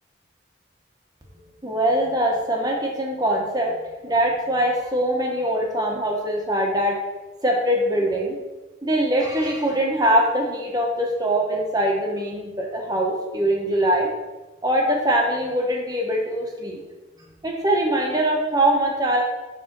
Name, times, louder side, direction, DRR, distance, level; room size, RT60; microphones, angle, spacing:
voice 1, 1.6-3.7 4.0-7.0 7.4-8.4 8.8-14.1 14.6-16.8 17.4-19.2, right 1 dB, 20° right, 0 dB, 1.2 m, -22 dB
7.5 x 3.6 x 6.0 m, 1.1 s
head